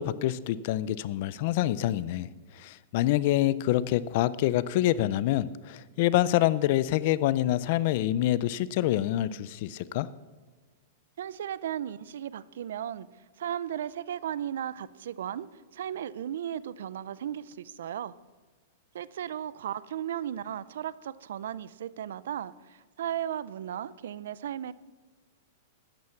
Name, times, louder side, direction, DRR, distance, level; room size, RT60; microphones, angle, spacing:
voice 1, 0.0-2.3 2.5-10.1, left 14 dB, 50° left, 18 dB, 0.5 m, -26 dB
voice 2, 11.2-13.1 13.4-15.5 15.7-18.1 18.9-24.7, right 10 dB, 75° right, 19 dB, 0.5 m, -35 dB
13.0 x 9.6 x 5.9 m, 1.4 s
supercardioid pair, 155°, 0 cm